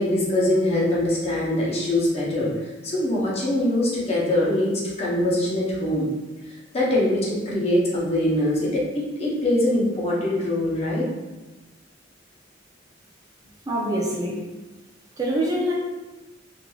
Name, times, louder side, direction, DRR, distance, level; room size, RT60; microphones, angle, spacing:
voice 1, 0.0-6.1 6.5-11.1, left 1 dB, 35° left, -5 dB, 0.7 m, -23 dB
voice 2, 13.7-14.4 15.2-15.7, right 1 dB, 20° right, -4 dB, 0.4 m, -24 dB
3.1 x 2.5 x 2.2 m, 1.1 s
head